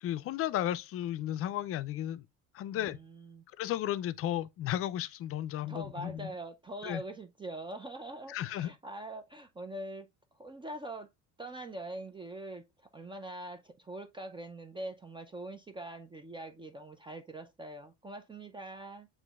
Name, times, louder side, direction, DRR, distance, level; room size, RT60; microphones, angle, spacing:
voice 1, 0.0-2.3 2.5-3.0 3.6-6.3 6.8-7.0 8.3-8.7, left 12 dB, 45° left, 0.4 m, -34 dB
voice 2, 2.7-3.4 5.7-10.1 10.4-11.1 11.4-19.1, right 1 dB, 15° right, 0.4 m, -43 dB
7.2 x 3.0 x 2.3 m
cardioid pair, 110°, 31 cm